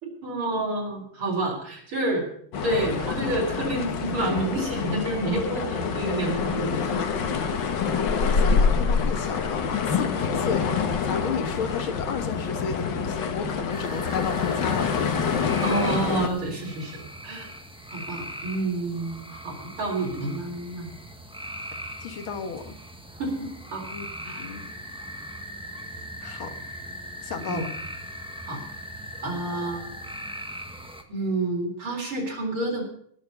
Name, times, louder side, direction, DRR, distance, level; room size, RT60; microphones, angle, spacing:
voice 1, 0.0-2.2 2.6-7.0 15.6-17.5 17.9-20.9 23.2-23.8 24.2-24.4 27.5-27.6 28.4-28.6 29.2-29.9 31.1-32.8, right 2 dB, 80° right, 0 dB, 4.9 m, -29 dB
sound 1, 2.5-16.3, left 5 dB, 60° left, 1.8 m, -26 dB
voice 2, 8.0-15.0 22.0-22.8 23.9-24.6 26.2-26.6 27.2-27.7, left 6 dB, 80° left, 7 dB, 2.3 m, -33 dB
sound 2, 13.7-31.0, equal, 5° right, 0.7 m, -39 dB
18.5 x 6.9 x 6.9 m, 0.65 s
omnidirectional pair, 2.3 m